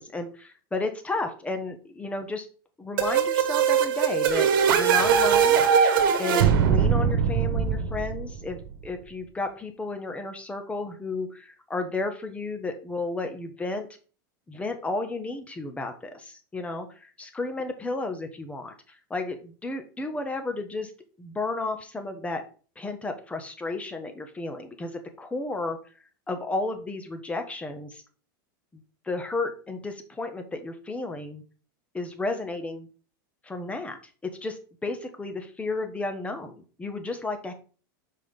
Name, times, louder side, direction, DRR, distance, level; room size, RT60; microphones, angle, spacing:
voice 1, 0.0-2.5 2.8-5.6 6.2-13.9 14.5-20.9 21.2-22.4 22.8-25.8 26.3-28.0 28.7-31.4 31.9-32.9 33.4-34.0 34.2-36.5 36.8-37.5, left 3 dB, 10° left, 6 dB, 1.3 m, -32 dB
sound 1, 3.0-8.6, right 7 dB, 75° right, 1.5 m, -21 dB
5.7 x 5.1 x 5.4 m, 0.38 s
supercardioid pair, 130°, 11 cm